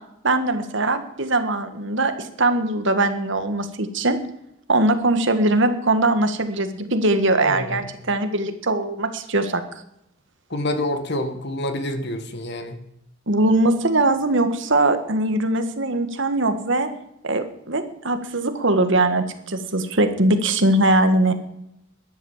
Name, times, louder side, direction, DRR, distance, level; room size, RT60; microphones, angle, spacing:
voice 1, 0.2-4.2 4.7-9.6 13.3-16.9 17.2-21.3, right 2 dB, 60° right, 9 dB, 1.7 m, -21 dB
voice 2, 7.4-7.9 10.5-12.8, left 1 dB, 55° left, 8 dB, 1.9 m, -27 dB
13.0 x 10.5 x 7.4 m, 0.78 s
head